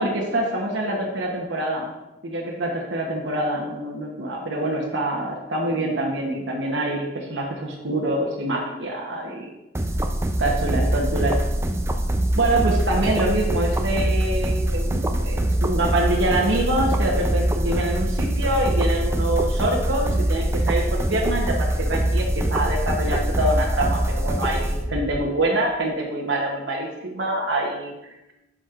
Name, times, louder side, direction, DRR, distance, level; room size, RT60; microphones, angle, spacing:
voice 1, 0.0-1.9 2.2-9.5 10.4-11.3 12.4-27.9, right 1 dB, 75° right, -2 dB, 1.0 m, -25 dB
sound 1, 9.7-25.2, right 1 dB, 15° right, 0.4 m, -23 dB
10.0 x 6.1 x 2.5 m, 0.97 s
head